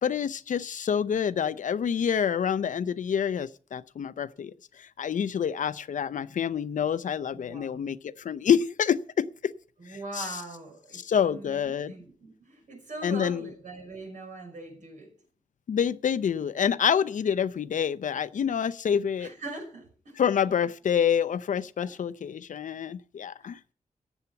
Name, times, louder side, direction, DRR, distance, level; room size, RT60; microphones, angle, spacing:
voice 1, 0.0-9.5 10.2-10.3 10.9-11.9 13.0-13.5 15.7-19.3 20.2-23.6, left 8 dB, 80° left, 14 dB, 0.6 m, -27 dB
voice 2, 7.3-8.0 9.8-15.1 19.2-20.2 21.8-22.0, right 2 dB, 80° right, 2 dB, 5.9 m, -42 dB
14.0 x 8.1 x 5.8 m, 0.43 s
wide cardioid pair, 100°, 13 cm